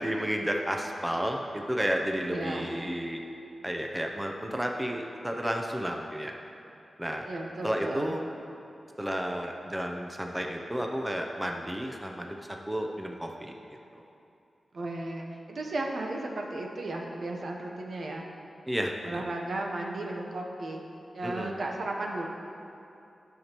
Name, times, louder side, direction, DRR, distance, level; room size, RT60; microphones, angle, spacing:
voice 1, 0.0-3.2 3.6-6.4 7.0-7.3 7.6-8.2 9.0-12.4 12.7-14.0 18.7-19.2 21.2-21.5, equal, 10° right, 2 dB, 0.5 m, -32 dB
voice 2, 2.3-2.6 7.3-8.1 14.7-18.2 19.1-20.8 21.1-22.3, right 2 dB, 65° right, 0 dB, 0.8 m, -34 dB
11.0 x 5.9 x 2.9 m, 2.7 s
wide cardioid pair, 85°, 0 cm